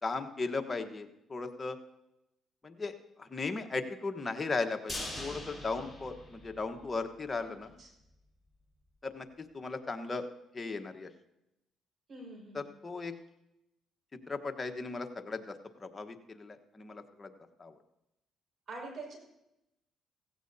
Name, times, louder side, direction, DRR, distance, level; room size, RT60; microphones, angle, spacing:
voice 1, 0.0-1.8 2.6-2.9 3.2-7.7 9.0-9.3 9.5-10.2 10.5-11.1 12.5-13.1 14.3-17.3 17.6-17.7, left 3 dB, 25° left, 6 dB, 1.3 m, -37 dB
sound 1, 4.9-7.0 7.4-7.5 7.8-7.9, left 1 dB, 5° right, 5.0 m, -42 dB
voice 2, 12.1-12.7 18.7-19.2, right 2 dB, 50° right, 1 dB, 5.6 m, -45 dB
16.5 x 16.0 x 2.8 m, 0.88 s
cardioid pair, 80°, 0 cm